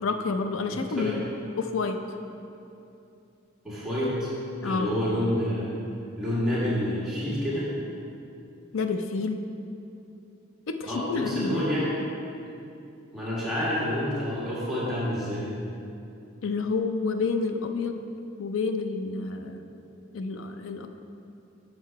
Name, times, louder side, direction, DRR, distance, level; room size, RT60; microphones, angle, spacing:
voice 1, 0.0-1.3 1.6-2.0 4.6-4.9 8.7-9.4 10.7-11.6 16.4-18.0 18.4-19.6 20.1-20.9, left 4 dB, 75° left, 7 dB, 0.5 m, -29 dB
voice 2, 0.7-1.2 3.6-4.3 4.6-5.7 6.2-8.0 10.8-11.9 13.1-15.5, left 1 dB, ahead, -10 dB, 1.8 m, -28 dB
6.6 x 6.3 x 4.6 m, 2.7 s
head